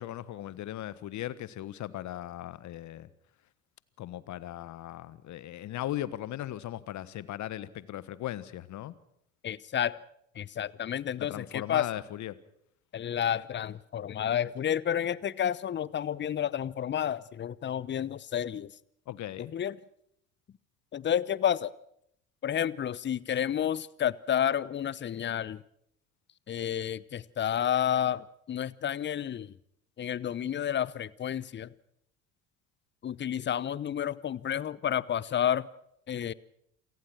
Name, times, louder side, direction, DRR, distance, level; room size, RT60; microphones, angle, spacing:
voice 1, 0.0-3.1 4.0-8.9 11.2-12.4 19.1-19.5, left 13 dB, 50° left, 17 dB, 1.4 m, -38 dB
voice 2, 9.4-10.0 10.4-11.9 12.9-18.7 19.4-19.7 20.9-21.7 22.4-25.6 26.5-29.5 30.0-31.7 33.0-35.7 36.1-36.3, left 9 dB, 30° left, 21 dB, 0.8 m, -30 dB
28.0 x 17.5 x 6.2 m, 0.73 s
figure-of-eight pair, 60°, 38 cm